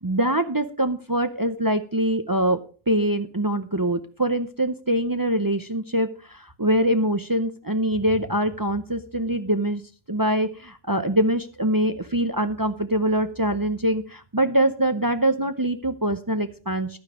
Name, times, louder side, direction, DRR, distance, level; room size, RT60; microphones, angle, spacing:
voice 1, 0.0-9.8 10.1-17.0, right 1 dB, 35° right, 9 dB, 0.3 m, -24 dB
12.0 x 9.6 x 5.0 m, 0.39 s
omnidirectional pair, 1.5 m